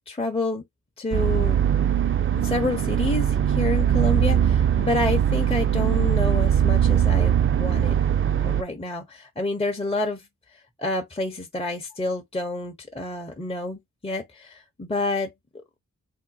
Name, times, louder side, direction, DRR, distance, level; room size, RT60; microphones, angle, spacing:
voice 1, 0.1-0.6 1.0-1.6 2.3-8.0 8.4-10.3 10.8-15.3, left 2 dB, 15° left, 0.7 m, -28 dB
sound 1, 1.1-8.6, right 9 dB, 40° right, 0.5 m, -21 dB
2.7 x 2.1 x 4.0 m
supercardioid pair, 40°, 34 cm